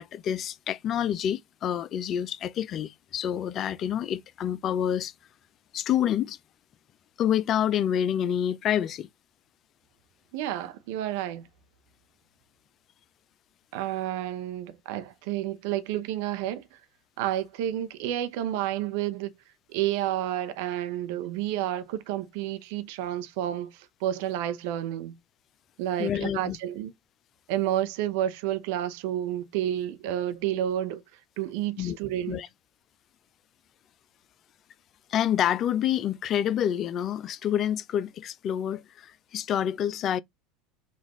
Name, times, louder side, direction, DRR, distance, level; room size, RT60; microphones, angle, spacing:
voice 1, 0.0-5.1 5.7-6.4 7.2-9.1 26.0-26.6 31.8-32.0 32.3-32.5 35.1-40.2, left 10 dB, 40° left, 0.5 m, -27 dB
voice 2, 10.3-11.5 13.7-16.6 17.2-19.3 19.7-25.2 25.8-26.9 27.5-31.0 31.4-32.4, right 12 dB, 60° right, 0.7 m, -30 dB
5.4 x 2.4 x 3.1 m
figure-of-eight pair, 75°, 0 cm